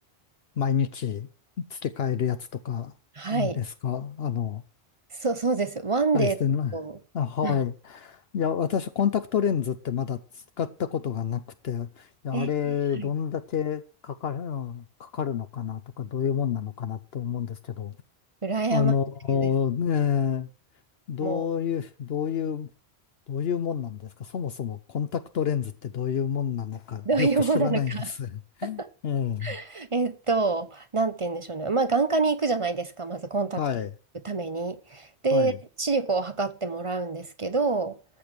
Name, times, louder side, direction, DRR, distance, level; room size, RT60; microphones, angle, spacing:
voice 1, 0.6-1.3 1.6-2.9 3.3-4.6 6.1-6.8 7.1-18.0 18.7-20.5 21.1-22.7 23.3-29.6 33.6-33.9 35.3-35.6, left 8 dB, 70° left, 1.0 m, -28 dB
voice 2, 3.2-3.6 5.1-6.4 6.7-7.0 7.4-7.6 12.3-13.1 18.4-18.9 19.3-19.5 21.2-21.5 27.0-28.1 28.6-28.9 29.4-33.6 34.2-35.5 35.8-38.0, right 3 dB, 35° right, 0.7 m, -27 dB
13.5 x 7.1 x 6.0 m
omnidirectional pair, 1.1 m